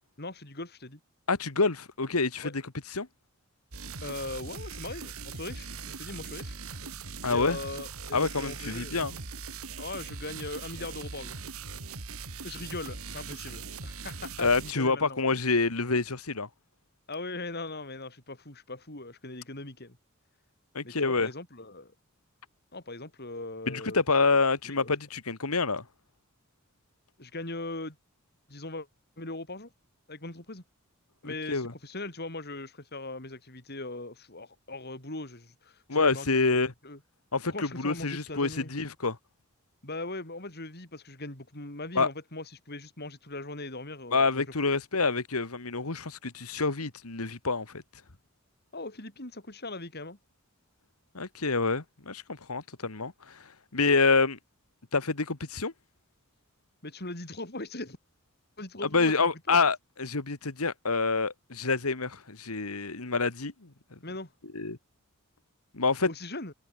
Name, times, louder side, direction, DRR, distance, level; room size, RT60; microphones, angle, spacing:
voice 1, 0.2-1.0 2.4-2.5 4.0-6.5 7.3-9.0 9.8-11.4 12.4-15.2 17.1-20.0 20.8-21.9 22.7-24.0 24.6-24.9 27.2-28.0 28.5-28.9 29.2-29.7 30.1-30.6 31.2-37.0 37.5-38.7 39.8-44.4 48.7-50.2 56.8-58.0 58.6-59.7 64.0-64.3 66.1-66.5, left 2 dB, 45° left, 4.9 m, -40 dB
voice 2, 1.3-2.6 2.9-3.1 7.2-7.6 8.1-9.2 14.4-16.5 20.7-21.3 23.7-25.8 31.2-31.7 35.9-36.7 37.3-39.2 42.0-42.1 44.1-47.8 51.1-54.4 54.9-55.7 58.9-64.0 64.5-64.8 65.7-66.1, left 4 dB, 80° left, 1.9 m, -27 dB
sound 1, 3.7-14.7, right 4 dB, 75° right, 2.5 m, -40 dB
head